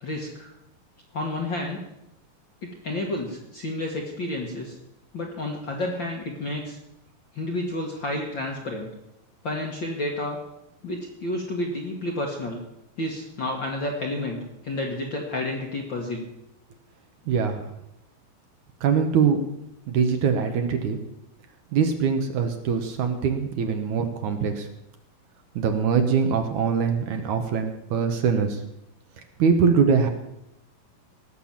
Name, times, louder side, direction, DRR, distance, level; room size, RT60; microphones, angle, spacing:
voice 1, 0.0-0.5 1.1-1.8 2.6-4.8 5.1-6.8 7.3-8.9 9.4-10.4 10.8-12.6 13.0-16.3, left 1 dB, 45° left, 0 dB, 1.6 m, -30 dB
voice 2, 17.3-17.6 18.8-19.4 19.9-21.0 21.7-24.7 25.6-28.6 29.4-30.1, right 6 dB, 65° right, 6 dB, 2.3 m, -23 dB
17.5 x 6.8 x 7.3 m, 0.84 s
omnidirectional pair, 4.0 m